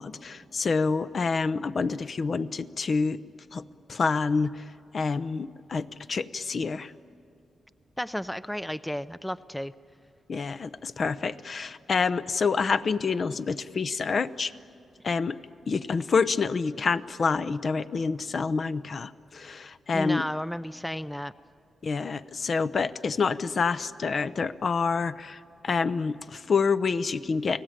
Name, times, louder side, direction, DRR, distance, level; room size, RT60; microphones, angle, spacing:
voice 1, 0.0-3.2 3.5-3.6 3.9-6.9 10.3-14.5 15.0-15.4 15.7-20.3 21.8-27.6, left 4 dB, 50° left, 12 dB, 0.7 m, -27 dB
voice 2, 8.0-9.7 19.9-21.3, equal, 5° left, 14 dB, 0.5 m, -33 dB
29.5 x 18.5 x 9.0 m, 2.7 s
cardioid pair, 85°, 0 cm